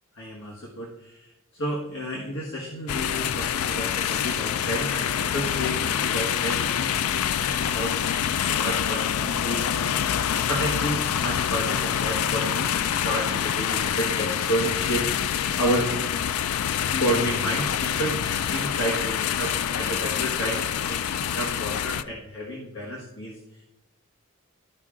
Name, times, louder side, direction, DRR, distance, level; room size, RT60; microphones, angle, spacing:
voice 1, 0.2-7.9 8.2-16.0 16.2-16.4 16.9-23.4, right 1 dB, 60° left, -3 dB, 1.4 m, -31 dB
sound 1, 2.9-22.0, left 9 dB, 85° left, 0.4 m, -26 dB
13.0 x 5.5 x 3.7 m, 0.95 s
head